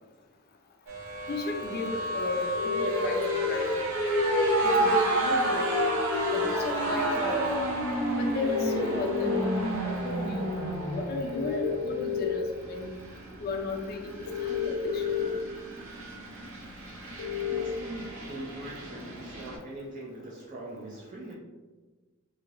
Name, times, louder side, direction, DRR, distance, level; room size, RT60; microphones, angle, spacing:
sound 1, 0.9-19.6, right 1 dB, 65° right, 0.8 m, -30 dB
voice 1, 1.3-3.7 4.6-5.7 6.3-7.4 8.1-9.3 9.8-13.0 13.4-15.2, left 3 dB, 45° left, 2 dB, 0.4 m, -35 dB
sound 2, 2.5-3.5 5.5-6.4 8.4-9.4 11.3-12.3 14.3-15.2 17.2-17.6, left 9 dB, 85° left, 0.7 m, -31 dB
voice 2, 17.4-21.3, right 1 dB, 40° right, -5 dB, 0.5 m, -42 dB
3.1 x 2.7 x 2.4 m, 1.3 s
head